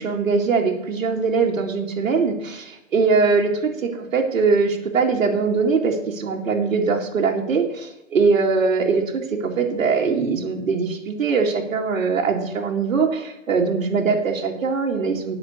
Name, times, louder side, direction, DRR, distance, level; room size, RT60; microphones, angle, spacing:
voice 1, 0.0-3.5 3.8-15.4, right 4 dB, 90° right, 0 dB, 2.3 m, -21 dB
8.8 x 6.1 x 7.9 m, 0.88 s
hypercardioid pair, 175°, 39 cm